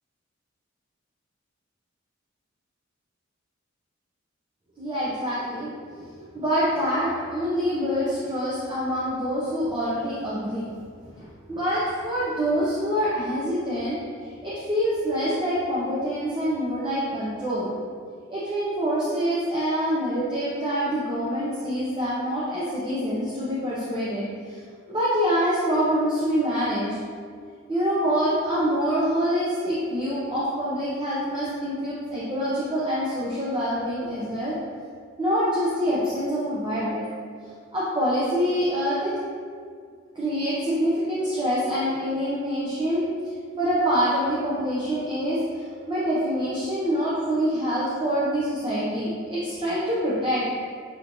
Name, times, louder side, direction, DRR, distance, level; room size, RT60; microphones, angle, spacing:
voice 1, 4.8-17.7 18.3-24.6 24.9-27.0 27.7-34.6 35.2-37.0 37.7-39.1 40.1-43.1 43.6-50.5, equal, 25° right, -9 dB, 0.7 m, -26 dB
6.6 x 3.0 x 2.6 m, 2.1 s
head